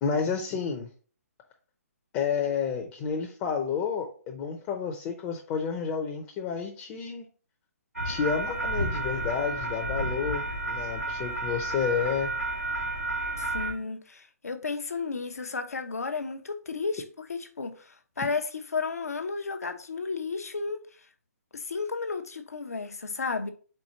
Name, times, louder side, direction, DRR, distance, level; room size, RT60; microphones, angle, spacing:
voice 1, 0.0-0.9 2.1-7.3 8.0-12.4, left 6 dB, 25° left, 0.6 m, -30 dB
sound 1, 8.0-13.7, right 2 dB, 90° right, 1.5 m, -31 dB
voice 2, 13.4-18.4 18.7-20.8 21.5-23.5, left 4 dB, 75° left, 0.8 m, -33 dB
4.4 x 4.1 x 2.9 m
figure-of-eight pair, 135°, 8 cm